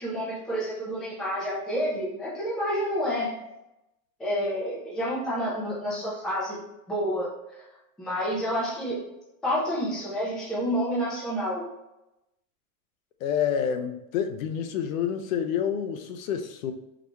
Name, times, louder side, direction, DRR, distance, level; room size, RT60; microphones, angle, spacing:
voice 1, 0.0-3.3 4.2-6.6 6.9-7.3 7.6-7.7 8.0-9.0 9.4-11.6, equal, ahead, -7 dB, 0.3 m, -29 dB
voice 2, 13.2-16.7, left 8 dB, 70° left, 7 dB, 0.6 m, -28 dB
3.9 x 2.2 x 2.9 m, 0.91 s
supercardioid pair, 140°, 42 cm